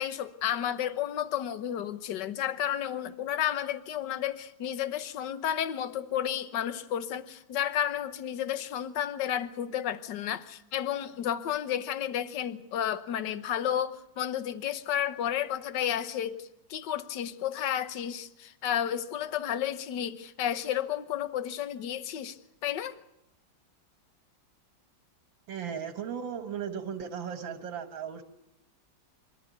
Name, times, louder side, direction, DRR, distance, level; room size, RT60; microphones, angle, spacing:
voice 1, 0.0-16.4 16.7-22.4 22.6-22.9, left 10 dB, 70° left, 1.6 m, -32 dB
voice 2, 25.5-28.2, right 7 dB, 85° right, 2.1 m, -36 dB
26.0 x 12.5 x 9.2 m
omnidirectional pair, 2.0 m